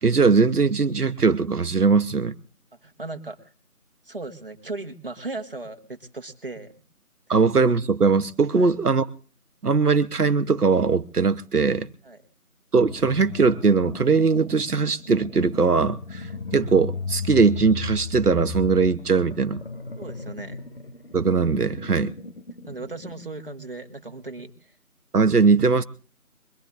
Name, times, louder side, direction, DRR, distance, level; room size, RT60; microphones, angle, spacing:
voice 1, 0.0-2.3 7.3-9.1 9.6-11.9 12.7-16.3 16.5-19.6 21.1-22.1 25.1-25.8, right 4 dB, 85° right, 11 dB, 1.0 m, -20 dB
voice 2, 2.8-3.5 4.0-6.7 7.3-7.4 8.5-8.7 12.0-12.2 20.0-20.6 22.7-24.7, right 3 dB, 35° right, 6 dB, 1.6 m, -37 dB
sound 1, 12.8-23.3, left 4 dB, 40° left, 1.2 m, -36 dB
23.0 x 20.5 x 2.5 m, 0.40 s
figure-of-eight pair, 170°, 45 cm